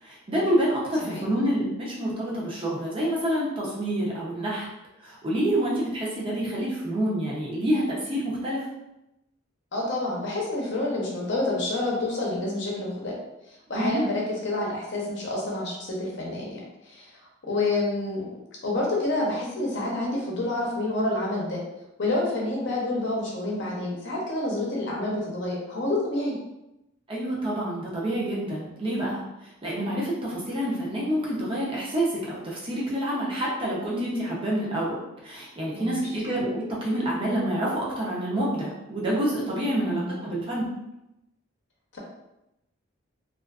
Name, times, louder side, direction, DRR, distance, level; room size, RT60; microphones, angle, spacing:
voice 1, 0.0-4.7 5.0-8.7 13.7-14.0 27.1-29.2 29.6-35.0 35.2-40.7, right 1 dB, 25° right, -5 dB, 0.6 m, -27 dB
voice 2, 9.7-13.1 13.7-16.6 16.9-17.1 17.4-18.3 18.6-21.6 22.0-26.4 35.7-36.0 39.7-40.3 41.9-42.0, left 2 dB, 60° left, -3 dB, 0.7 m, -28 dB
2.4 x 2.4 x 2.3 m, 0.89 s
head